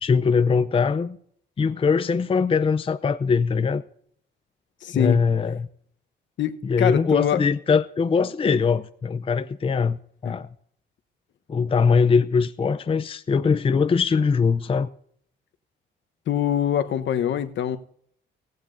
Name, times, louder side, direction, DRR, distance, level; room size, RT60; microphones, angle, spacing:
voice 1, 0.0-1.2 1.6-3.8 4.9-5.7 6.6-10.5 11.5-14.9, left 5 dB, 30° left, 0.5 m, -21 dB
voice 2, 4.8-5.2 6.4-7.4 10.2-10.4 16.3-17.8, left 10 dB, 70° left, 1.1 m, -24 dB
16.5 x 16.0 x 2.7 m
cardioid pair, 90°, 20 cm